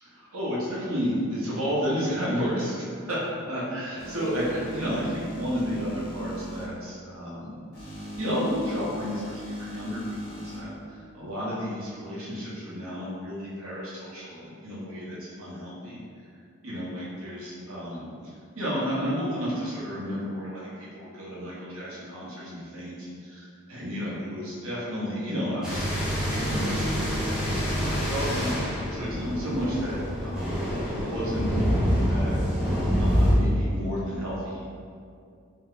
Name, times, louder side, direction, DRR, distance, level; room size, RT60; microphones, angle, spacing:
voice 1, 0.0-3.2 3.5-7.5 7.9-16.0 16.6-18.1 18.5-26.0 26.3-30.5 30.8-32.4 33.0-34.6, equal, 85° right, -7 dB, 1.0 m, -32 dB
sound 1, 4.0-6.6 7.7-10.6, equal, 45° left, 0.8 m, -38 dB
sound 2, 25.6-33.3, equal, 5° right, 0.6 m, -26 dB
2.8 x 2.2 x 3.7 m, 2.3 s
head